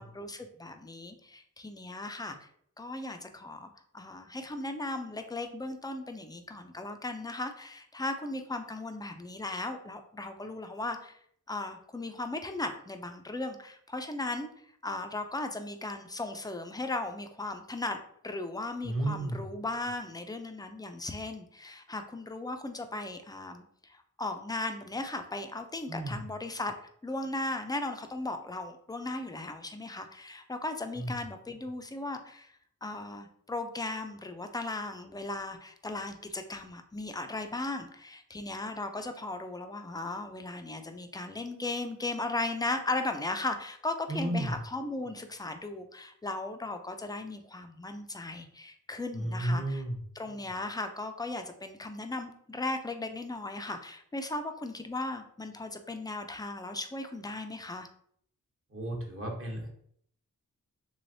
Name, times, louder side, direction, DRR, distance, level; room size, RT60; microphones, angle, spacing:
voice 1, 0.0-2.5 2.8-11.2 11.5-14.5 14.8-26.7 27.0-49.8 50.2-57.9, left 2 dB, 10° left, 6 dB, 0.4 m, -37 dB
voice 2, 18.8-19.4 25.9-26.2 30.9-31.1 44.1-44.6 49.1-50.0 58.7-59.7, right 1 dB, 40° right, 0 dB, 1.0 m, -32 dB
3.3 x 3.2 x 2.6 m, 0.65 s
wide cardioid pair, 85°, 33 cm